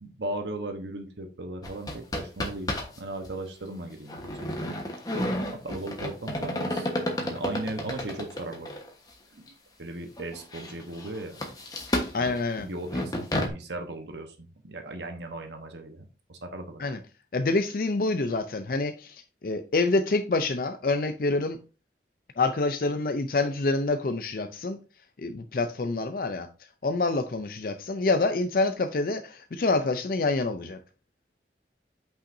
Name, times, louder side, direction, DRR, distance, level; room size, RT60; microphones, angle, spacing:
voice 1, 0.0-4.8 5.5-6.9 7.2-8.7 9.3-9.4 9.8-11.4 12.2-12.4 12.6-16.8, right 2 dB, 80° right, 1.1 m, -37 dB
sound 1, 1.6-3.0 3.2-3.3 4.1-8.9 9.5-9.6 10.2-13.5, left 1 dB, 20° left, 1.2 m, -31 dB
voice 2, 12.1-12.7 16.8-17.0 17.3-21.6 22.4-24.8 25.2-26.5 26.8-30.8, left 3 dB, 50° left, 0.5 m, -27 dB
8.6 x 5.6 x 2.6 m
head